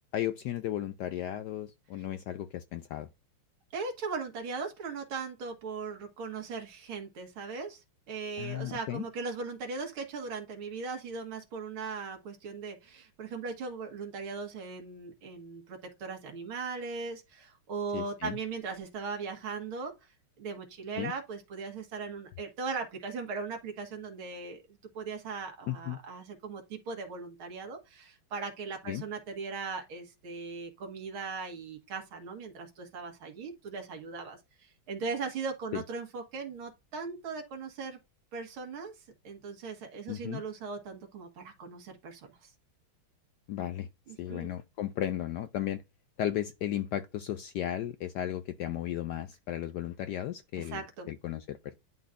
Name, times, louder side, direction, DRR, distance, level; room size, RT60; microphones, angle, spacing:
voice 1, 0.1-3.1 8.4-9.0 17.9-18.4 21.0-21.1 25.7-26.0 28.9-29.0 35.7-35.8 40.1-40.4 43.5-43.9 44.2-45.8 46.2-50.8 51.1-51.7, left 11 dB, 75° left, 0.9 m, -35 dB
voice 2, 3.7-19.9 20.4-38.0 38.3-38.9 39.2-42.5 44.1-44.5 50.6-51.1, right 4 dB, 80° right, 2.4 m, -39 dB
11.0 x 4.0 x 2.5 m
omnidirectional pair, 2.3 m